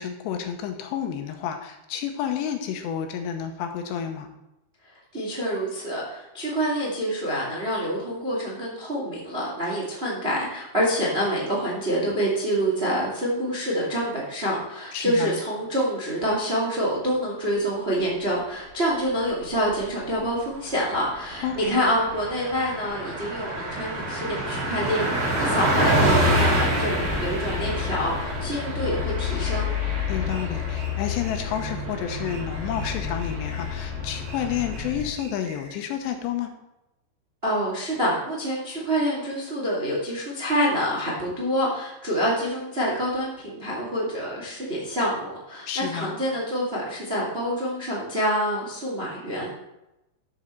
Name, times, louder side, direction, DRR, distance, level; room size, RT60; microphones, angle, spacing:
voice 1, 0.0-4.3 14.9-15.4 21.4-21.8 30.1-36.5 45.7-46.2, left 9 dB, 75° left, 5 dB, 2.8 m, -30 dB
voice 2, 5.1-29.7 37.4-49.5, equal, 85° right, -4 dB, 0.5 m, -27 dB
Car passing by, 19.2-19.9 20.2-20.3 20.6-34.9, right 1 dB, 35° right, 3.0 m, -28 dB
sound 1, 27.0-35.1, left 8 dB, 35° left, 2.0 m, -31 dB
sound 2, 30.3-31.8 32.2-33.8 34.2-35.8, right 2 dB, 65° right, 4.4 m, -46 dB
13.0 x 6.3 x 4.4 m, 0.92 s
omnidirectional pair, 5.5 m